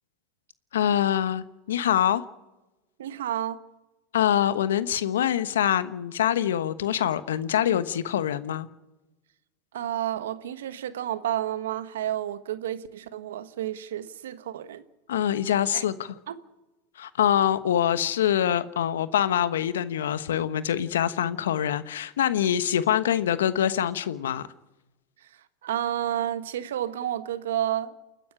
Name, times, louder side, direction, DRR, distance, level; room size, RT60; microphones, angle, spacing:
voice 1, 0.7-2.2 4.1-8.7 15.1-16.1 17.0-24.5, left 10 dB, 85° left, 1.2 m, -25 dB
voice 2, 3.0-3.6 9.7-14.8 15.7-15.8 16.3-16.4 25.2-28.0, right 11 dB, 80° right, 1.4 m, -31 dB
29.0 x 9.8 x 9.9 m
hypercardioid pair, 100°, 0 cm